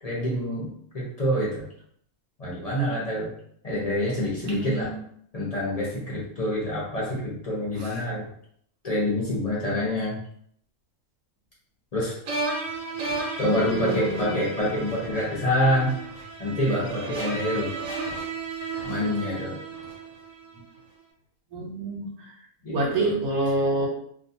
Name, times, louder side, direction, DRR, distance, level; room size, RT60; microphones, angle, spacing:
voice 1, 0.0-1.6 2.4-3.3 3.6-4.9 5.3-8.3 8.8-10.2 11.9-12.1 13.4-15.9 16.4-17.8 18.8-19.6 22.6-23.1, left 1 dB, 40° left, -5 dB, 0.6 m, -26 dB
voice 2, 4.4-5.0 7.8-8.0 13.5-14.4 21.5-22.4 22.7-23.9, right 2 dB, 85° right, -3 dB, 1.2 m, -28 dB
sound 1, 12.3-20.5, right 3 dB, 65° right, 1.0 m, -33 dB
2.5 x 2.2 x 2.7 m, 0.65 s
omnidirectional pair, 1.6 m